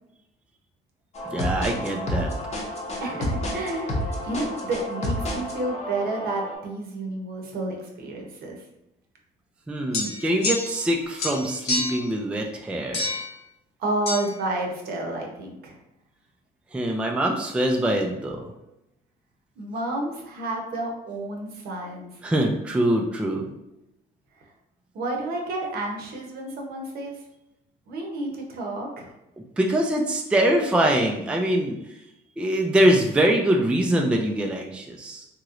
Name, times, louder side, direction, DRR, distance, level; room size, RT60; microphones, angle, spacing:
sound 1, 1.1-6.6, left 1 dB, 40° left, 0.8 m, -30 dB
voice 1, 1.3-2.3 9.7-13.1 16.7-18.5 22.2-23.5 29.6-31.8 32.4-35.3, right 1 dB, 5° right, 2 dB, 0.3 m, -23 dB
voice 2, 3.0-8.6 13.8-15.8 19.6-22.2 24.9-27.1 27.9-29.1, right 2 dB, 65° right, 1 dB, 0.8 m, -30 dB
sound 2, 9.9-10.9 11.2-12.1 12.9-13.3 14.1-14.2, left 3 dB, 75° left, 0.9 m, -28 dB
3.0 x 2.9 x 2.4 m, 0.88 s
cardioid pair, 110°, 17 cm